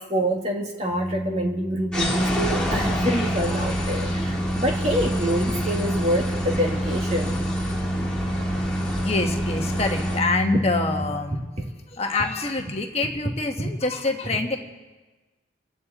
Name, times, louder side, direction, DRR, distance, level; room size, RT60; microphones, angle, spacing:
voice 1, 0.0-7.3 13.6-13.7, equal, 35° right, 1 dB, 2.1 m, -26 dB
Organ, 0.8-11.6, right 1 dB, 75° left, 1.6 m, -28 dB
sound 1, 1.9-10.2, left 1 dB, 5° left, 2.4 m, -30 dB
voice 2, 9.0-11.4 11.9-14.6, left 3 dB, 35° left, 3 dB, 1.3 m, -26 dB
29.0 x 9.9 x 4.2 m, 1.2 s
head